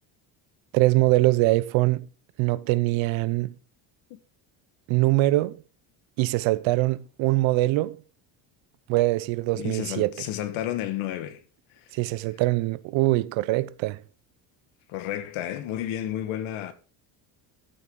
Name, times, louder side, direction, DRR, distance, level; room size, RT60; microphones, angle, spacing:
voice 1, 0.7-2.0 2.4-3.5 4.9-5.6 6.2-8.0 8.9-10.1 11.9-14.0, right 18 dB, 75° right, 0.8 m, -23 dB
voice 2, 9.6-11.4 11.7-11.9 14.9-16.7, left 12 dB, 90° left, 1.7 m, -31 dB
14.0 x 6.3 x 3.9 m
cardioid pair, 170°, 46 cm